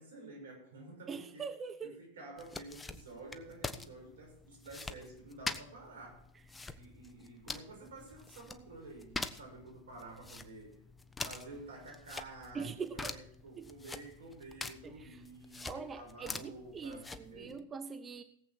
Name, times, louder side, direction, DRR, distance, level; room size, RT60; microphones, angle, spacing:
voice 1, 0.0-1.4 1.8-6.3 6.7-10.8 11.2-17.6, right 2 dB, 80° right, 2 dB, 6.0 m, -51 dB
voice 2, 1.1-2.0 12.5-13.0 13.6-13.7 14.8-15.2 15.6-18.2, right 5 dB, 25° right, 11 dB, 0.9 m, -43 dB
sound 1, 2.4-17.6, left 3 dB, 15° left, 1.1 m, -45 dB
18.5 x 8.2 x 4.4 m, 0.69 s
hypercardioid pair, 100°, 0 cm